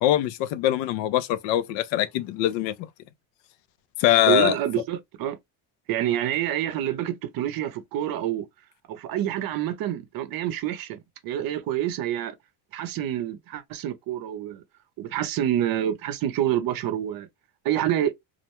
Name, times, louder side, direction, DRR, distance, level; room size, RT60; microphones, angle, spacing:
voice 1, 0.0-2.7 4.0-4.6, left 13 dB, 80° left, 0.5 m, -22 dB
voice 2, 4.3-5.4 5.9-8.5 8.9-12.4 12.7-14.6 15.0-17.3 17.6-18.1, right 11 dB, 55° right, 0.6 m, -27 dB
2.4 x 2.1 x 2.8 m
cardioid pair, 140°, 43 cm